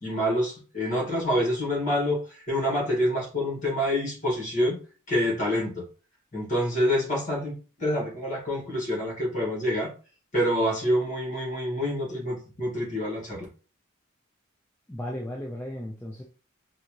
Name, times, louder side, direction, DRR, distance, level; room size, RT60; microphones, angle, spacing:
voice 1, 0.0-4.8 5.1-5.8 6.3-9.9 10.3-13.5, equal, 35° left, -2 dB, 1.7 m, -27 dB
voice 2, 14.9-16.2, left 1 dB, 10° left, -2 dB, 0.5 m, -35 dB
4.0 x 2.5 x 3.0 m, 0.36 s
head